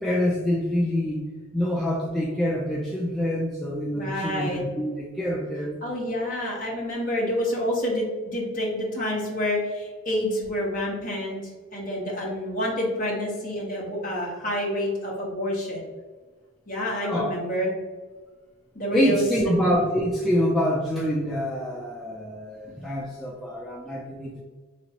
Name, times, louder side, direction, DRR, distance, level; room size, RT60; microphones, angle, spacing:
voice 1, 0.0-1.3 1.5-5.8 17.0-17.3 18.9-24.4, equal, ahead, -5 dB, 0.3 m, -26 dB
voice 2, 3.9-4.6 5.8-11.4 11.7-15.8 16.7-17.7 18.7-19.2 19.6-19.8, left 1 dB, 40° left, -3 dB, 1.1 m, -28 dB
4.2 x 3.0 x 2.8 m, 1.4 s
head